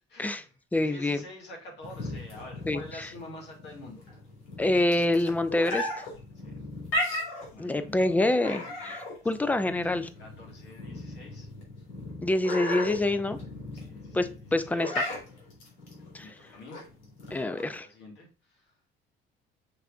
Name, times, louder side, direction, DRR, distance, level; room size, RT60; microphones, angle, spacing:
voice 1, 0.1-4.0 6.3-6.7 7.3-8.3 8.8-9.1 10.2-11.5 13.7-14.3 14.7-15.0 16.2-16.8 17.4-18.7, left 1 dB, 60° left, -1 dB, 2.1 m, -47 dB
voice 2, 0.7-1.2 2.7-2.8 4.6-5.9 7.6-10.1 12.2-13.4 14.1-15.1 16.1-16.3 17.3-17.9, left 2 dB, 10° left, 11 dB, 0.4 m, -26 dB
sound 1, 1.8-17.8, left 1 dB, 85° left, 2.3 m, -36 dB
6.1 x 3.3 x 2.4 m, 0.35 s
cardioid pair, 115°, 20 cm